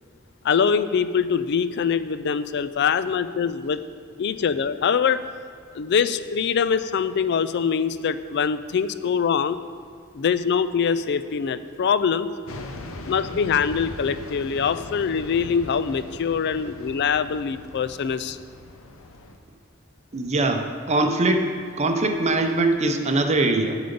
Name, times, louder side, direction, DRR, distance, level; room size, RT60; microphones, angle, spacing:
voice 1, 0.4-3.8 4.2-5.2 5.7-9.6 10.1-12.3 13.1-18.4, left 6 dB, 55° left, 13 dB, 0.4 m, -23 dB
sound 1, 12.5-19.4, left 2 dB, 85° left, 0.8 m, -39 dB
voice 2, 20.1-21.5 21.8-23.8, right 2 dB, 35° right, 5 dB, 0.7 m, -22 dB
7.7 x 7.0 x 5.2 m, 2.2 s
head